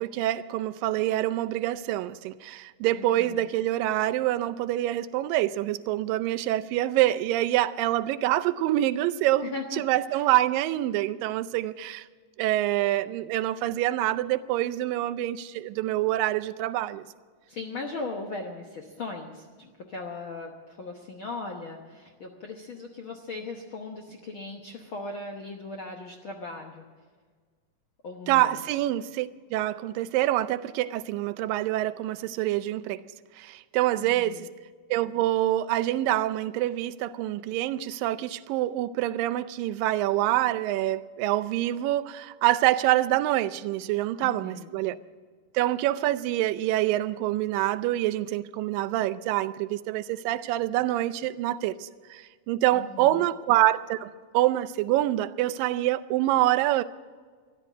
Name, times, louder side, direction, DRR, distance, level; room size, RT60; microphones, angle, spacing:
voice 1, 0.0-12.1 12.4-17.1 28.3-33.0 33.4-34.5 34.9-45.0 45.5-56.8, right 14 dB, 90° right, 2.3 m, -26 dB
voice 2, 2.9-3.4 9.4-9.8 10.1-10.2 17.5-26.8 28.0-28.5 34.0-34.5 44.2-44.8 52.7-53.2, left 3 dB, 65° left, 1.2 m, -38 dB
14.0 x 11.5 x 8.3 m
omnidirectional pair, 3.9 m